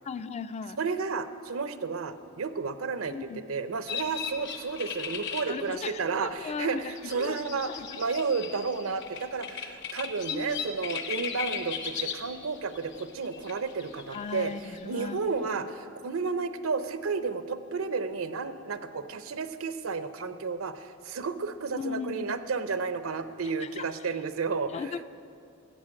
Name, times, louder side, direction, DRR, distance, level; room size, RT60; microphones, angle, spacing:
voice 1, 0.0-0.8 3.1-3.4 5.5-6.0 6.4-6.9 7.2-7.4 7.7-7.9 10.3-10.7 14.1-15.2 21.8-22.4 23.6-23.9 24.7-25.0, left 5 dB, 30° left, 13 dB, 0.3 m, -36 dB
voice 2, 0.8-7.7 8.0-25.0, right 4 dB, 85° right, 11 dB, 0.7 m, -32 dB
sound 1, 3.9-15.2, left 7 dB, 55° left, 0.9 m, -38 dB
14.0 x 8.2 x 7.6 m, 2.5 s
head